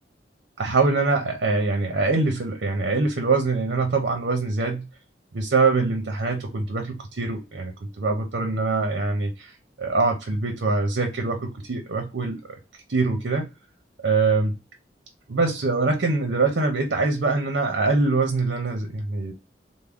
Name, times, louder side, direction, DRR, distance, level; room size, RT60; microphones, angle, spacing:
voice 1, 0.6-4.9 5.3-12.4 12.9-13.5 14.0-14.6 15.3-19.3, right 3 dB, 70° right, 0.6 m, -24 dB
3.5 x 2.0 x 3.5 m
head